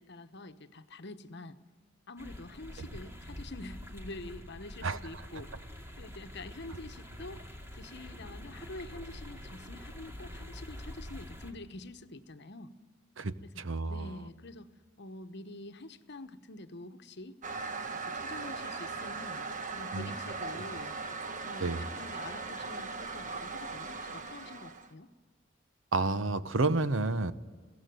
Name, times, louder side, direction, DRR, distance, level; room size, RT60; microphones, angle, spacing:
voice 1, 0.0-1.6 2.1-5.5 6.0-7.4 7.7-12.7 13.5-14.7 15.0-17.4 17.9-20.9 21.4-25.1, left 2 dB, 60° left, 9 dB, 1.1 m, -46 dB
sound 1, 2.2-11.5, left 1 dB, 15° right, 2.5 m, -46 dB
voice 2, 13.2-14.1 19.9-20.1 21.6-21.8 25.9-27.3, right 3 dB, 85° right, 13 dB, 1.0 m, -30 dB
Toilet flush, 17.4-24.9, right 4 dB, 40° right, 1.3 m, -39 dB
21.5 x 17.0 x 9.4 m, 1.5 s
head